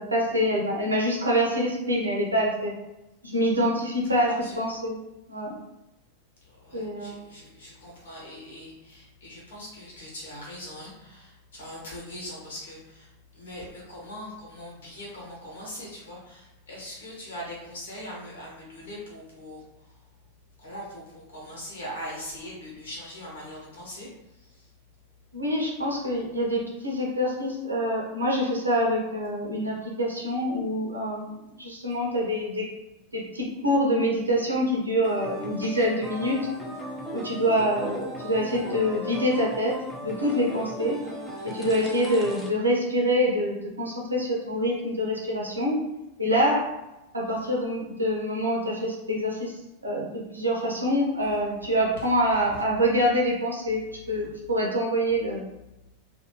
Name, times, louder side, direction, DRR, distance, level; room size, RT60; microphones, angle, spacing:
voice 1, 0.0-2.8 3.2-4.3 4.6-5.0 5.3-5.6 6.7-7.2 25.3-32.7 33.1-36.4 37.1-39.7 40.0-41.0 41.4-45.8 46.2-46.7 47.1-49.5 49.8-55.5, equal, 80° right, -3 dB, 0.7 m, -26 dB
voice 2, 4.1-4.6 6.4-20.0 20.6-24.7 47.3-47.4, equal, 65° left, -3 dB, 1.0 m, -41 dB
sound 1, 35.0-42.5, equal, 5° left, 0.6 m, -37 dB
2.6 x 2.2 x 2.9 m, 0.95 s
figure-of-eight pair, 90°, 0 cm